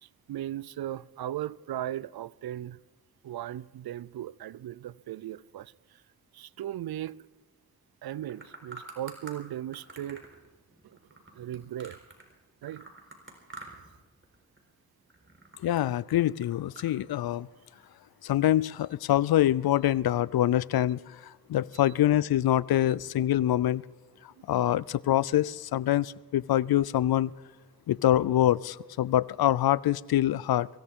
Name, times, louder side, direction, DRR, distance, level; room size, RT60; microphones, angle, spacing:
voice 1, 0.0-2.8 3.2-6.0 6.3-7.3 8.0-10.2 10.8-11.0 11.3-12.0 12.6-12.9 24.4-24.5, right 12 dB, 85° right, 0.5 m, -37 dB
sound 1, 8.1-9.4 9.7-12.3 12.6-14.0 14.2-14.7 15.1-16.9, right 3 dB, 35° right, 4.3 m, -47 dB
voice 2, 15.6-17.5 18.2-23.8 24.5-27.3 27.9-30.7, left 12 dB, 85° left, 0.5 m, -25 dB
23.5 x 16.0 x 3.7 m
cardioid pair, 60°, 36 cm